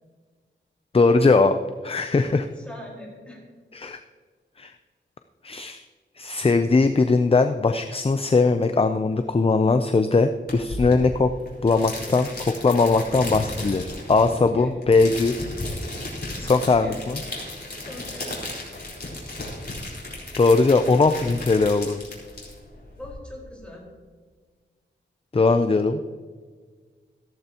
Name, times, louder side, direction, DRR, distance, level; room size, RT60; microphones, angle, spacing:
voice 1, 0.9-1.6 1.8-2.5 3.7-4.0 4.6-4.7 5.4-5.8 6.2-11.3 11.6-15.4 16.4-17.2 20.4-22.0 25.3-26.0, left 3 dB, 30° left, 8 dB, 0.5 m, -20 dB
voice 2, 2.3-3.4 14.5-14.8 16.4-17.0 17.7-18.5 23.0-23.9, left 1 dB, 5° left, -3 dB, 4.5 m, -42 dB
sound 1, 10.5-23.1, left 2 dB, 55° left, 4.2 m, -35 dB
15.5 x 14.0 x 2.9 m, 1.6 s
wide cardioid pair, 85°, 20 cm